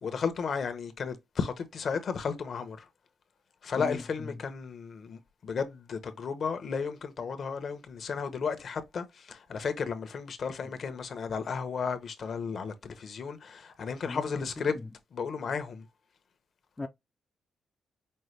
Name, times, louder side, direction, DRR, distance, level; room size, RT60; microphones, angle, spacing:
voice 1, 0.0-2.9 3.6-14.7 15.1-15.8, left 5 dB, 55° left, 0.8 m, -34 dB
voice 2, 3.7-4.4 14.0-14.9 16.8-16.9, left 3 dB, 20° left, 0.4 m, -39 dB
5.4 x 2.2 x 3.2 m
cardioid pair, 110°, 0 cm